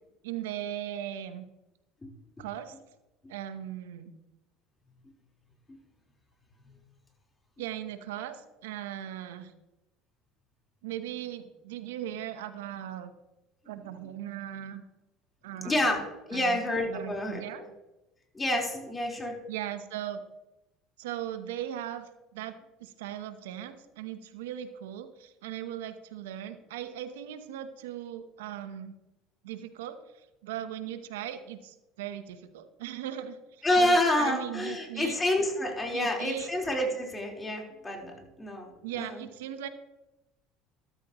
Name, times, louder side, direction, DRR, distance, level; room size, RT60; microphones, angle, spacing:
voice 1, 0.2-1.4 2.4-2.7 3.3-4.1 7.6-9.5 10.8-13.1 13.7-14.8 15.4-15.9 16.3-17.6 19.5-20.2 21.0-29.0 29.4-35.2 35.9-36.5 38.8-39.7, right 11 dB, 85° right, 10 dB, 1.0 m, -38 dB
voice 2, 2.0-2.4 5.7-5.8 15.6-16.0 16.3-17.6 18.3-19.4 33.6-39.2, left 1 dB, 20° left, 0 dB, 4.2 m, -28 dB
13.5 x 13.0 x 3.1 m, 0.98 s
supercardioid pair, 90°, 0 cm